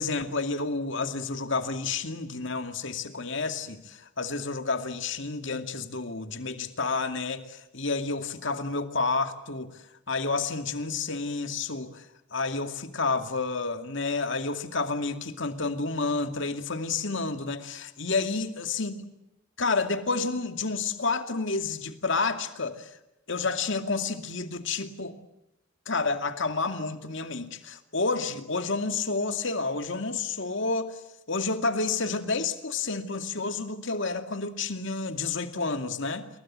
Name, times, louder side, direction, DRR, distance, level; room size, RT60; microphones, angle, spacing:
voice 1, 0.0-12.1 12.3-18.9 19.6-22.9 23.3-25.2 25.9-31.0 31.3-36.3, left 3 dB, 60° left, 2.4 m, -30 dB
29.0 x 22.5 x 7.6 m
head